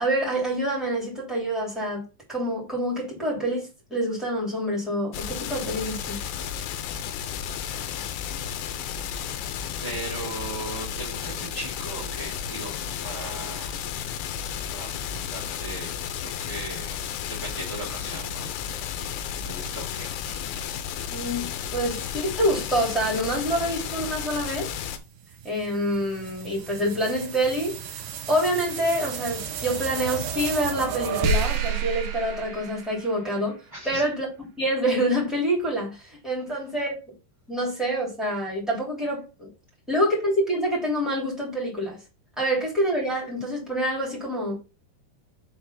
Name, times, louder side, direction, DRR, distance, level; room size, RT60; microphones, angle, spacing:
voice 1, 0.0-6.2 21.1-24.7 25.4-27.8 28.3-33.5 33.8-37.0 37.5-39.5 39.9-42.0 42.4-44.5, equal, ahead, 1.9 m, -26 dB
sound 1, 5.1-25.0, left 8 dB, 85° left, 3.0 m, -33 dB
voice 2, 9.8-13.8 14.7-15.9 16.2-16.9 17.2-18.5 19.4-20.1 33.7-34.0, right 2 dB, 15° right, 0.9 m, -38 dB
sound 2, 24.8-33.4, right 6 dB, 85° right, 1.9 m, -31 dB
7.1 x 3.5 x 5.7 m
omnidirectional pair, 5.2 m